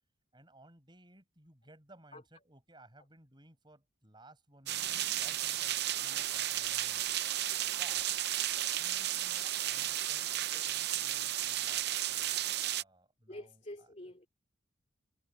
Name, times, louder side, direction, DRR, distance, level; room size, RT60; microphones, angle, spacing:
voice 1, 0.3-4.9 5.2-7.2 7.8-8.0 8.8-13.5, right 1 dB, 20° right, 6.8 m, -59 dB
voice 2, 2.1-2.4 5.9-6.2 9.4-9.5 10.5-10.7 13.3-14.3, left 1 dB, 35° left, 2.7 m, -49 dB
sound 1, 4.7-12.8, right 12 dB, 50° right, 0.7 m, -33 dB
head